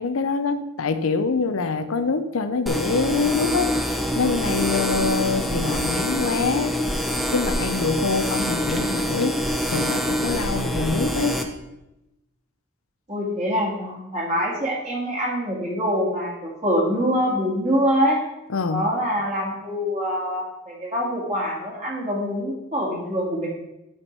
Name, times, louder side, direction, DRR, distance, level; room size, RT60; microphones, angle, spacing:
voice 1, 0.0-6.8 7.3-9.4 9.7-11.4 18.5-18.9, left 4 dB, 90° left, 10 dB, 0.7 m, -25 dB
sound 1, 2.7-11.4, equal, ahead, 0.6 m, -25 dB
voice 2, 13.1-18.2 18.7-23.5, equal, 35° right, -5 dB, 2.0 m, -24 dB
10.5 x 4.5 x 4.5 m, 0.93 s
head